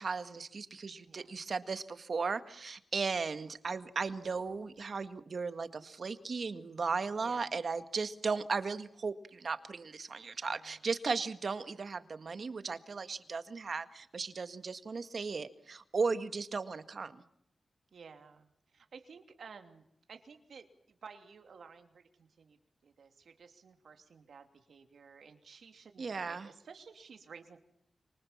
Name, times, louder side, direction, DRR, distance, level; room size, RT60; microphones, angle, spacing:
voice 1, 0.0-17.2 26.0-26.5, right 4 dB, 65° right, 10 dB, 1.9 m, -36 dB
voice 2, 1.1-1.4 7.2-7.5 10.5-10.9 17.9-27.6, right 5 dB, 90° right, 7 dB, 2.9 m, -54 dB
28.5 x 26.5 x 7.4 m, 0.77 s
wide cardioid pair, 75°, 0 cm